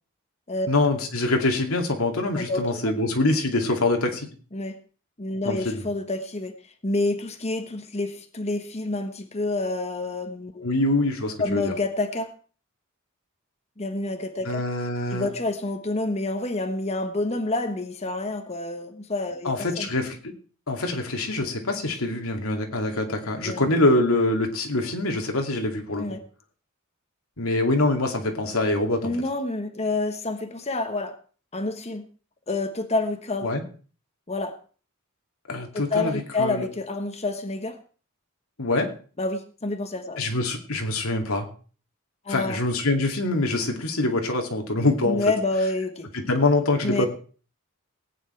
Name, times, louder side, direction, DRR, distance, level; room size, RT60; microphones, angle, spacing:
voice 1, 0.7-4.3 5.4-5.8 10.6-11.7 14.4-15.3 19.4-20.2 20.7-26.0 27.4-29.1 33.4-33.6 35.5-36.6 38.6-38.9 40.2-41.5 42.3-45.2 46.1-47.1, left 2 dB, 90° left, 3 dB, 2.5 m, -24 dB
voice 2, 2.3-2.9 4.5-4.8 5.2-10.8 11.4-12.3 13.8-14.7 15.1-19.9 23.4-23.6 25.9-26.2 29.0-31.2 31.5-32.0 32.5-33.5 34.3-34.6 35.7-37.8 39.2-40.2 42.2-42.6 45.1-46.1 46.8-47.1, left 2 dB, 30° left, 6 dB, 1.2 m, -28 dB
18.0 x 9.1 x 4.5 m, 0.40 s
head